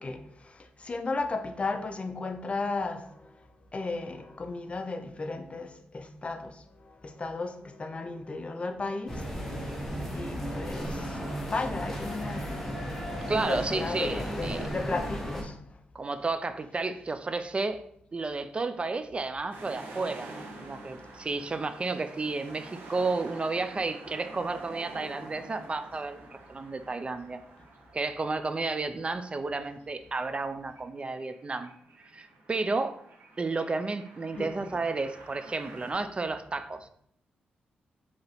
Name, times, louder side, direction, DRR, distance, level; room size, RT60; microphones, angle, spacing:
voice 1, 0.0-3.5 3.7-9.2 10.1-11.2 11.5-12.5 13.3-15.6 34.3-34.5, left 3 dB, 35° left, 0.5 m, -35 dB
sound 1, 9.1-15.4, equal, 10° left, 1.1 m, -35 dB
voice 2, 13.3-14.6 15.9-17.8 18.1-27.4 27.9-31.7 32.1-33.0 33.4-36.9, right 3 dB, 30° right, 0.3 m, -32 dB
sound 2, 19.5-35.9, right 2 dB, 80° right, 0.9 m, -48 dB
4.9 x 2.8 x 3.0 m
cardioid pair, 65°, 3 cm